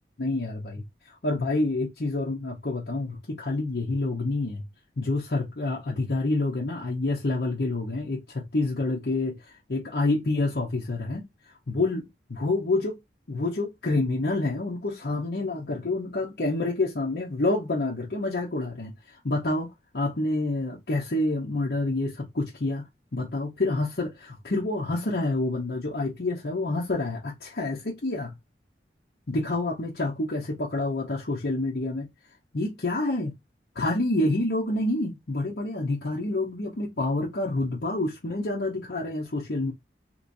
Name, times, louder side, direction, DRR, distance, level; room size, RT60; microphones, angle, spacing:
voice 1, 0.2-4.6 5.0-9.4 9.7-11.2 11.7-12.9 13.3-22.8 23.1-28.3 29.3-32.1 32.5-33.3 33.7-39.7, left 2 dB, 65° left, 0.8 m, -28 dB
3.0 x 3.0 x 2.6 m
head